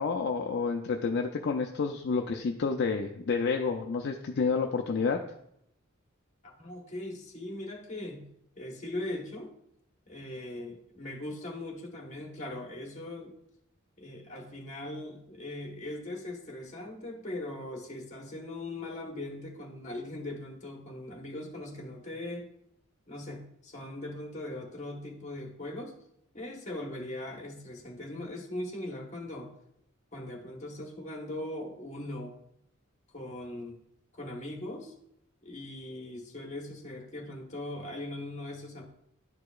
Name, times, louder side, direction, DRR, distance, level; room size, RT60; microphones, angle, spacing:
voice 1, 0.0-5.2, left 4 dB, 55° left, 3 dB, 0.4 m, -29 dB
voice 2, 6.4-8.3 8.6-9.5 10.1-13.4 14.0-22.5 23.1-26.0 26.3-29.5 30.1-32.3 33.1-33.8 34.1-34.9 35.4-38.9, left 1 dB, 35° left, 0 dB, 1.3 m, -40 dB
11.0 x 4.8 x 2.4 m, 0.76 s
head